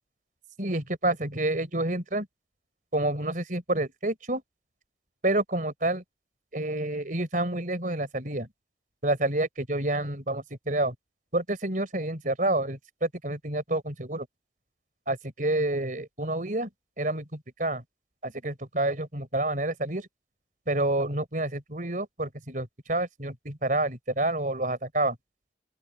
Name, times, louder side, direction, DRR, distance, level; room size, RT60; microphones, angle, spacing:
voice 1, 0.6-2.3 2.9-4.4 5.2-6.0 6.5-8.5 9.0-10.9 11.3-14.3 15.1-16.7 17.0-17.8 18.2-20.1 20.7-25.2, right 2 dB, 45° right, 4.0 m, -28 dB
open air
head